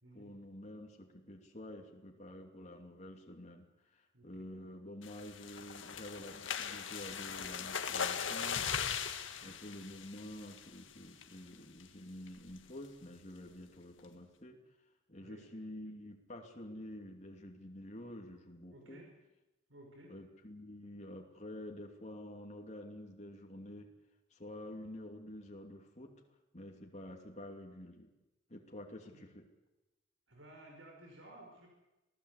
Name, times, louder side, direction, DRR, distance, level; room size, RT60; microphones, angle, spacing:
voice 1, 0.1-8.6 9.4-14.6 15.1-19.0 20.1-23.9 24.3-26.1 26.5-28.1 28.5-29.5, left 1 dB, 35° left, 1 dB, 2.8 m, -49 dB
sound 1, 5.0-10.8 11.2-11.5 11.8-11.9 12.3-12.6, left 7 dB, 80° left, 1.9 m, -39 dB
voice 2, 18.7-19.1 19.7-20.1 29.1-29.3 30.3-31.7, right 1 dB, 85° right, 1 dB, 5.3 m, -56 dB
27.5 x 17.5 x 8.3 m, 1.0 s
head